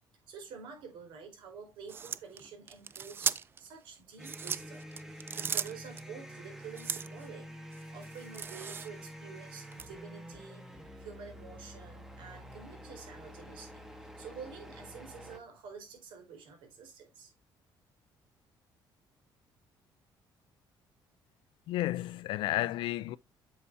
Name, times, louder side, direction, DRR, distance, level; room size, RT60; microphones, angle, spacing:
voice 1, 0.3-5.0 5.3-7.5 7.9-10.7 11.0-13.8 14.2-17.3, right 6 dB, 85° right, 4.3 m, -49 dB
sound 1, 1.9-3.7 4.1-6.0 6.7-7.3 7.7-9.1 9.7-9.9, right 6 dB, 25° right, 0.4 m, -37 dB
sound 2, 4.2-15.4, equal, 5° right, 1.1 m, -48 dB
voice 2, 21.7-23.2, left 15 dB, 85° left, 0.5 m, -32 dB
8.4 x 6.8 x 2.7 m
cardioid pair, 165°, 8 cm